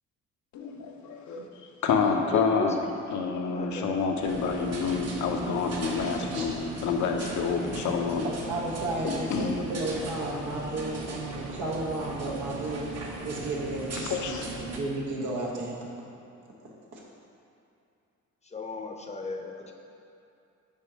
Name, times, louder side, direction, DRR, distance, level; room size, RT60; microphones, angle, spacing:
voice 1, 0.5-2.8 3.1-8.3 9.0-9.6 14.0-14.4, left 5 dB, 70° left, 3 dB, 0.7 m, -28 dB
voice 2, 2.3-2.7 3.5-3.8 4.1-4.2 18.4-19.7, left 4 dB, 20° left, 3 dB, 0.7 m, -35 dB
sound 1, 4.2-14.8, right 3 dB, 55° right, 1.0 m, -38 dB
voice 3, 7.6-15.9 16.6-17.0, right 2 dB, 85° right, -3 dB, 1.2 m, -34 dB
5.4 x 4.3 x 5.0 m, 2.6 s
cardioid pair, 90°, 30 cm